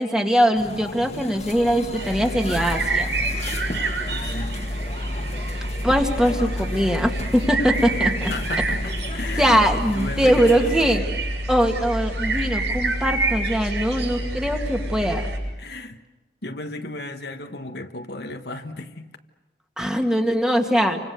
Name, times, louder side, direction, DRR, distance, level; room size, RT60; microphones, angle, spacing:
voice 1, 0.0-3.1 5.8-8.3 9.4-11.0 11.5-15.3 19.8-21.0, equal, 5° right, 2.1 m, -21 dB
sound 1, 0.5-11.0, left 2 dB, 35° left, 1.8 m, -35 dB
sound 2, 1.9-15.4, right 1 dB, 70° right, 7.0 m, -27 dB
voice 2, 4.1-4.6 8.3-10.7 15.6-16.0 16.4-19.1, left 2 dB, 60° left, 1.4 m, -34 dB
29.5 x 25.5 x 6.7 m
head